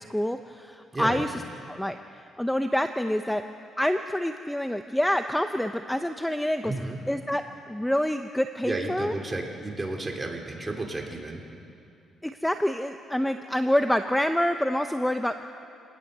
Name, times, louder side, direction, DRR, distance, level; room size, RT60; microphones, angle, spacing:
voice 1, 0.1-1.3 1.7-2.0 2.4-3.4 3.8-6.7 7.1-7.4 7.7-9.1 12.2-15.3, equal, 5° left, 8 dB, 0.8 m, -26 dB
voice 2, 0.9-1.2 6.6-7.0 8.6-11.4, right 2 dB, 20° right, 2 dB, 3.6 m, -32 dB
27.5 x 19.0 x 6.8 m, 2.6 s
cardioid pair, 90°, 0 cm